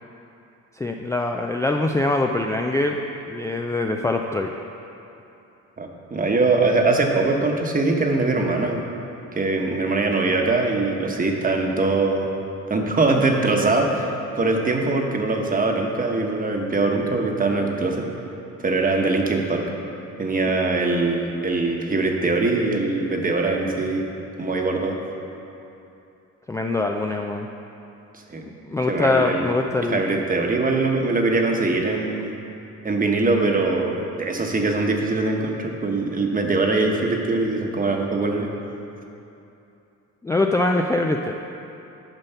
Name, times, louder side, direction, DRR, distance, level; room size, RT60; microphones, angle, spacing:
voice 1, 0.8-4.5 26.5-27.5 28.6-30.2 40.2-41.3, left 2 dB, 10° left, 2 dB, 0.4 m, -23 dB
voice 2, 5.8-8.9 9.3-12.3 12.7-18.1 18.6-19.6 20.2-24.0 24.4-25.0 28.1-28.4 28.9-29.5 29.9-32.4 32.8-38.5, right 3 dB, 30° right, 2 dB, 1.1 m, -22 dB
9.0 x 5.4 x 5.7 m, 2.8 s
cardioid pair, 90°, 30 cm